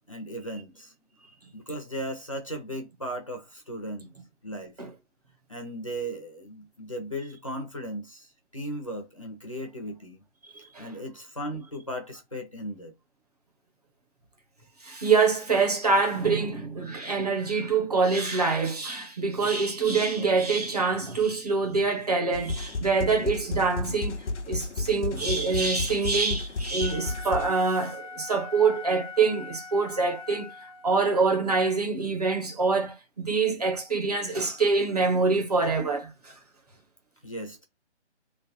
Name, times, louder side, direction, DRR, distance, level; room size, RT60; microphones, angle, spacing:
voice 1, 0.1-0.9 1.5-4.1 4.4-4.7 5.5-10.2 10.6-12.9 37.2-37.6, equal, 30° left, 0.6 m, -36 dB
voice 2, 14.8-30.5 30.8-36.3, right 4 dB, 35° right, 0.9 m, -25 dB
sound 1, 22.3-27.5, left 3 dB, 75° left, 0.7 m, -32 dB
Wind instrument woodwind instrument, 26.8-31.1, left 4 dB, 60° right, 1.5 m, -42 dB
3.2 x 3.0 x 4.1 m
hypercardioid pair, 170°, 35 cm